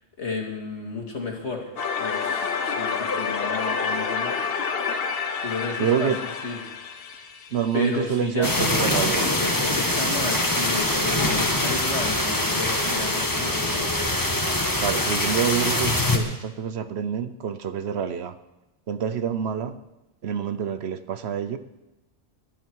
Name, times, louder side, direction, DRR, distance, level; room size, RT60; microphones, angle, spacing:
voice 1, 0.2-1.7 2.0-4.4 5.4-6.1 6.4-6.6 7.7-13.9, left 4 dB, 75° left, 1 dB, 2.7 m, -32 dB
sound 1, 1.8-8.6, left 5 dB, 55° left, 1.1 m, -29 dB
voice 2, 5.8-6.2 7.5-9.3 14.8-18.3 18.9-19.8 20.2-21.6, right 8 dB, 65° right, 12 dB, 1.0 m, -27 dB
sound 2, 8.4-16.2, left 1 dB, 15° left, 1.5 m, -24 dB
22.0 x 11.0 x 4.7 m, 1.0 s
omnidirectional pair, 1.2 m